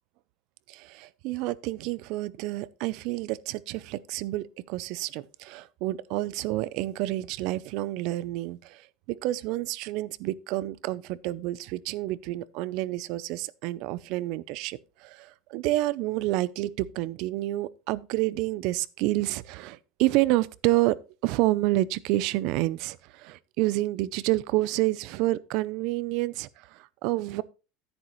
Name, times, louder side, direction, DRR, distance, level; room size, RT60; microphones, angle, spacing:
voice 1, 0.7-21.0 21.2-27.4, right 17 dB, 55° right, 0.5 m, -29 dB
10.0 x 9.7 x 3.1 m
cardioid pair, 170°, 0 cm